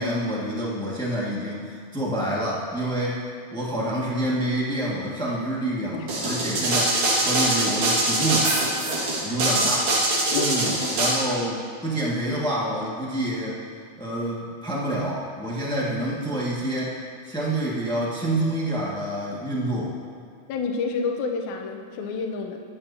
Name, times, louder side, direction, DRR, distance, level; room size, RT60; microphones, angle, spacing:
voice 1, 0.0-3.2 3.5-6.9 7.2-8.5 9.2-9.9 10.3-13.6 14.0-17.0 17.2-19.9, right 1 dB, 5° left, -6 dB, 0.5 m, -27 dB
sound 1, 6.1-11.1, right 2 dB, 80° right, 3.6 m, -23 dB
voice 2, 20.5-22.6, left 5 dB, 70° left, 2 dB, 2.1 m, -28 dB
21.0 x 8.7 x 2.8 m, 2.1 s
omnidirectional pair, 3.7 m